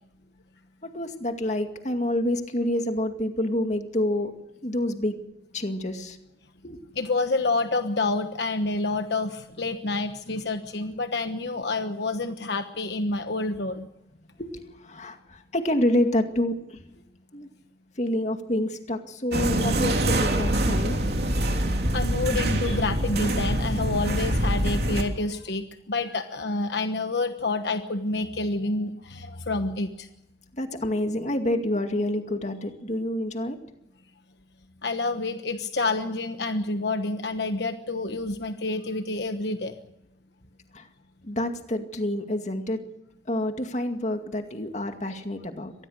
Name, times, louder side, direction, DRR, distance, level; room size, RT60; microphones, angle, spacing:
voice 1, 0.8-4.3 4.6-5.2 5.5-6.2 6.6-6.8 14.4-16.8 17.3-17.5 18.0-21.0 22.7-22.8 30.5-33.6 40.7-40.9 41.2-42.8 43.3-45.7, left 1 dB, 40° left, 6 dB, 2.2 m, -28 dB
voice 2, 6.9-13.9 21.9-30.1 34.8-39.7, left 3 dB, 65° left, 7 dB, 1.2 m, -28 dB
sound 1, 19.3-25.0, right 1 dB, 60° right, 3.4 m, -25 dB
25.0 x 19.5 x 6.6 m, 0.90 s
head